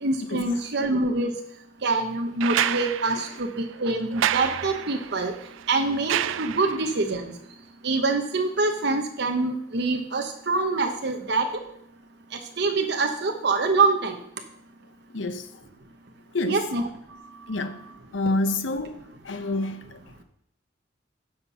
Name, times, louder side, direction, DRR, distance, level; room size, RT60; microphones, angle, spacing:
voice 1, 0.0-1.3 1.8-5.3 5.7-7.3 7.8-11.5 12.3-14.2 16.5-16.8, right 3 dB, 60° right, 0.9 m, -25 dB
sound 1, 2.4-7.0 8.6-8.7, right 10 dB, 90° right, 0.4 m, -29 dB
voice 2, 15.1-15.5 16.3-16.6 17.5-17.8 18.1-19.0 19.2-20.0, left 2 dB, 80° left, 1.0 m, -27 dB
9.8 x 6.6 x 5.6 m
head